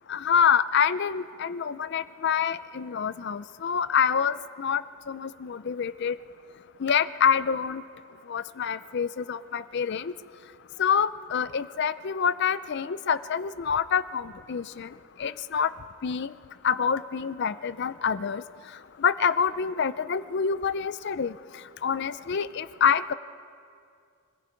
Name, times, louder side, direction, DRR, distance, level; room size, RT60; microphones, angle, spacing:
voice 1, 0.1-4.8 5.1-6.2 6.8-7.8 8.3-10.1 10.8-14.9 15.2-15.7 16.0-16.3 16.6-18.4 19.0-21.3 21.8-23.1, left 7 dB, 50° left, 14 dB, 0.4 m, -26 dB
25.0 x 20.5 x 5.1 m, 2.3 s
head